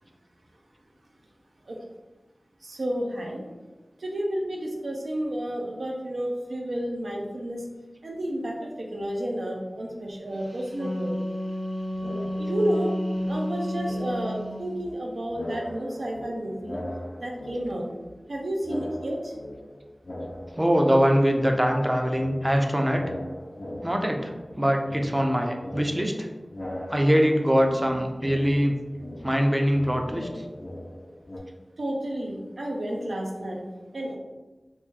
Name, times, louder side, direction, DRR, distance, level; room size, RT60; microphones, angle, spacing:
voice 1, 2.6-3.4 4.0-7.6 8.0-11.1 12.4-12.9 13.3-16.8 17.2-17.9 18.3-19.3 31.8-33.6 33.9-34.2, right 1 dB, 85° right, -1 dB, 0.6 m, -31 dB
Wind instrument woodwind instrument, 10.5-14.7, equal, 55° right, 0.9 m, -31 dB
sound 1, 11.9-12.8 13.1-15.0 15.3-18.3 18.6-21.2 21.4-31.4, left 1 dB, 85° left, 0.6 m, -40 dB
voice 2, 20.6-23.0 23.8-26.3 26.9-28.8 29.2-30.4, equal, 20° right, 3 dB, 0.5 m, -23 dB
3.0 x 2.6 x 3.6 m, 1.2 s
wide cardioid pair, 65°, 0 cm